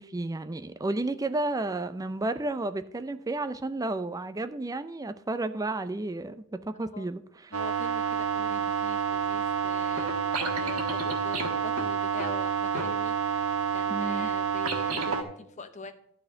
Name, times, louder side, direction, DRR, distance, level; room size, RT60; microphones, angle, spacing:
voice 1, 0.0-7.6 13.9-14.3, right 2 dB, 15° right, 0.4 m, -32 dB
voice 2, 6.7-7.1 7.5-15.9, left 3 dB, 35° left, 0.8 m, -44 dB
sound 1, 7.5-15.2, right 6 dB, 75° right, 1.4 m, -29 dB
12.0 x 4.2 x 7.7 m
head